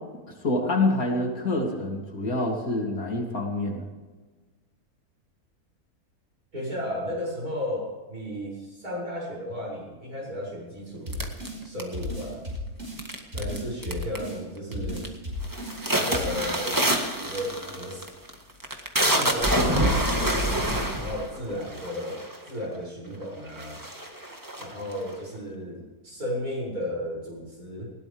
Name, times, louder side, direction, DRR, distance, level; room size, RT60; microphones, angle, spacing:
voice 1, 0.4-3.8, left 2 dB, 65° left, 0 dB, 3.5 m, -26 dB
voice 2, 6.5-11.3 11.6-12.4 13.3-15.1 15.9-16.9 17.2-18.1 19.0-20.3 20.9-23.8 24.6-27.9, equal, 65° right, -3 dB, 7.9 m, -34 dB
sound 1, 11.1-12.2 13.0-13.6 13.8-14.3 14.7-15.1 15.4-22.5 23.1-23.2 23.5-25.1, right 1 dB, 10° right, 1.8 m, -26 dB
sound 2, 11.1-11.6 11.9-13.0 13.3-14.4 14.7-15.8 16.1-16.5, left 1 dB, 45° right, 5.8 m, -34 dB
20.0 x 18.0 x 3.6 m, 1.2 s
omnidirectional pair, 1.7 m